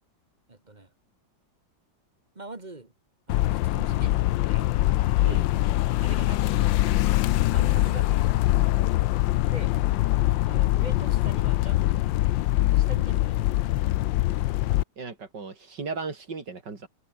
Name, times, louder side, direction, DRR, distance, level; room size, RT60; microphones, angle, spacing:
voice 1, 0.5-0.9 2.3-2.9 3.3-4.2 4.5-4.9 6.0-6.6 7.4-8.3 9.5-9.7 10.4-12.3 12.7-13.7, right 2 dB, 25° right, 2.1 m, -43 dB
sound 1, 3.3-14.8, left 16 dB, 90° left, 1.4 m, -23 dB
voice 2, 15.0-16.9, right 4 dB, 70° right, 3.8 m, -36 dB
omnidirectional pair, 2.0 m